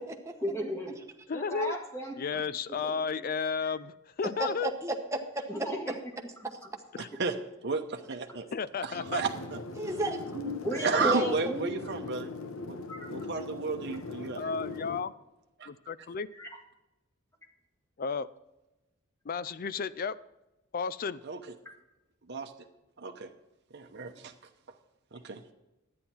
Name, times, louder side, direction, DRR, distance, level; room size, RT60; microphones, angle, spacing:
voice 1, 0.4-1.0 1.3-2.4 2.8-2.9 5.5-6.0 10.6-11.8 12.9-13.1 16.3-16.5 21.7-21.8, right 1 dB, 15° left, 1 dB, 1.8 m, -35 dB
voice 2, 1.3-1.8 2.2-4.7 7.0-7.1 8.5-9.2 13.3-13.4 14.3-15.1 15.7-16.3 18.0-18.3 19.3-20.2 20.7-21.2, left 5 dB, 45° left, 17 dB, 0.4 m, -33 dB
voice 3, 4.4-5.5 9.8-10.5 11.0-11.4, right 1 dB, 15° right, 3 dB, 1.0 m, -32 dB
voice 4, 7.6-8.4 8.8-9.6 10.7-12.3 12.7-12.8 13.1-14.5 15.6-15.7 21.2-21.4 22.3-22.5 23.0-23.3 23.7-24.3 25.1-25.5, right 4 dB, 55° right, 4 dB, 0.8 m, -32 dB
sound 1, 8.9-15.0, left 3 dB, 75° left, 0.8 m, -40 dB
11.0 x 9.4 x 4.3 m, 0.99 s
head